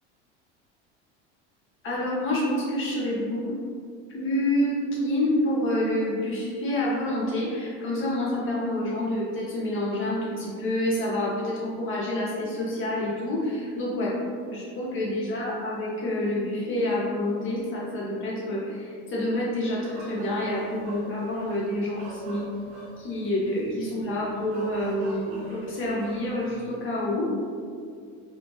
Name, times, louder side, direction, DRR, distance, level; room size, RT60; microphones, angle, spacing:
voice 1, 1.8-3.6 4.1-14.2 14.5-22.5 23.0-27.3, left 1 dB, 35° left, -5 dB, 1.4 m, -28 dB
sound 1, 19.8-26.7, right 2 dB, 75° right, 1.1 m, -45 dB
4.2 x 3.1 x 2.8 m, 2.2 s
supercardioid pair, 105°, 34 cm